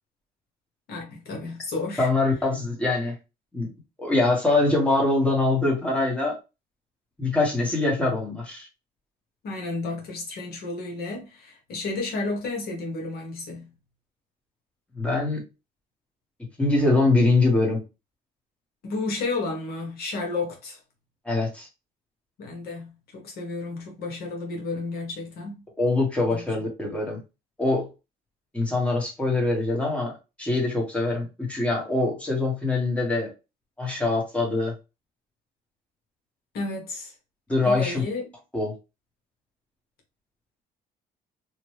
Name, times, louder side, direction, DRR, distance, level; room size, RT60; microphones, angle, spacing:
voice 1, 0.9-2.1 9.4-13.7 18.8-20.8 22.4-25.6 26.3-26.5 36.5-37.1 37.6-38.2, left 3 dB, 70° left, 1.3 m, -32 dB
voice 2, 2.0-3.1 3.5-3.7 4.0-6.4 7.2-8.7 15.0-15.4 16.6-17.8 21.2-21.7 25.8-27.2 27.6-27.9 28.5-30.1 30.4-33.3 33.8-34.7 37.5-38.0 38.5-38.7, left 2 dB, 5° left, 1.4 m, -23 dB
3.0 x 2.6 x 3.2 m
cardioid pair, 110°, 17 cm